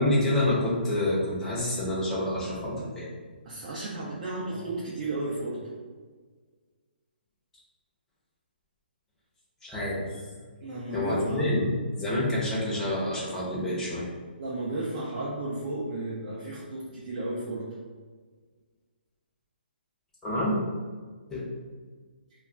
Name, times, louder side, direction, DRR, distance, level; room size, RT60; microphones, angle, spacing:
voice 1, 0.0-3.1 9.6-10.2 10.9-11.7 12.0-14.0 20.2-20.6 21.3-21.4, left 1 dB, 5° left, -7 dB, 0.6 m, -27 dB
voice 2, 3.4-5.6 10.6-11.5 14.4-17.7, right 2 dB, 40° right, -5 dB, 0.5 m, -33 dB
2.2 x 2.1 x 3.7 m, 1.5 s
hypercardioid pair, 160°, 6 cm